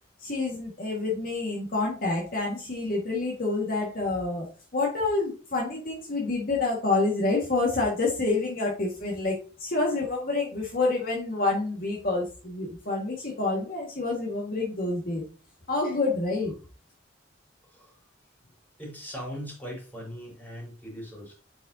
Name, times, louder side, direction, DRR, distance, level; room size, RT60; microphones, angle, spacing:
voice 1, 0.2-4.5 4.7-15.2 15.7-16.5, left 3 dB, 50° left, -2 dB, 1.8 m, -28 dB
voice 2, 17.6-18.0 18.8-21.3, equal, 10° left, -3 dB, 4.2 m, -40 dB
8.7 x 5.4 x 2.8 m, 0.35 s
head